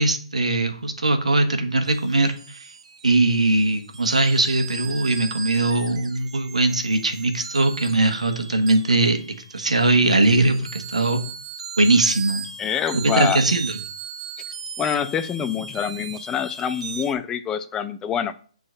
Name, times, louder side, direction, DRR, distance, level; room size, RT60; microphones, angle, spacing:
voice 1, 0.0-2.7 3.0-11.2 11.8-12.5 12.9-13.7, right 2 dB, 90° right, 8 dB, 1.4 m, -20 dB
sound 1, 1.8-17.1, right 5 dB, 65° right, 1.3 m, -37 dB
voice 2, 12.6-13.4 14.8-18.3, left 8 dB, 15° left, 11 dB, 0.6 m, -26 dB
7.8 x 4.1 x 5.6 m, 0.43 s
hypercardioid pair, 140°, 4 cm